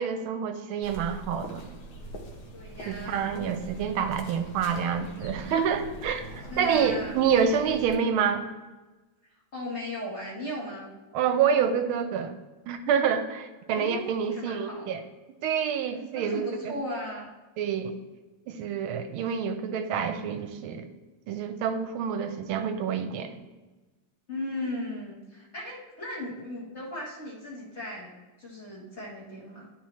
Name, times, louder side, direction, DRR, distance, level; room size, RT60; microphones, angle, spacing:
voice 1, 0.0-1.7 2.9-6.2 6.6-8.5 11.1-12.3 12.7-15.0 15.4-16.7 17.6-17.9 18.5-20.9 21.3-23.3, right 7 dB, 85° right, 8 dB, 1.5 m, -27 dB
sound 1, 0.8-8.0, right 1 dB, 65° left, 1.7 m, -43 dB
voice 2, 2.5-3.5 6.5-7.2 9.5-10.9 13.7-14.9 16.2-17.3 24.3-29.7, left 1 dB, 35° left, -5 dB, 1.9 m, -37 dB
11.0 x 4.3 x 3.1 m, 1.2 s
omnidirectional pair, 2.3 m